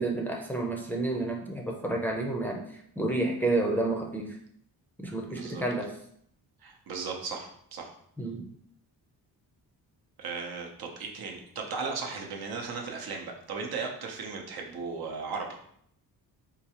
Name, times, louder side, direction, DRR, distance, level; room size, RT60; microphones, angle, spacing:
voice 1, 0.0-4.4 5.0-5.9 8.2-8.4, right 2 dB, 5° left, 0 dB, 0.5 m, -30 dB
voice 2, 5.3-5.6 6.6-7.9 10.2-15.6, right 4 dB, 70° right, 2 dB, 0.7 m, -36 dB
3.8 x 2.3 x 2.9 m, 0.67 s
cardioid pair, 100°, 38 cm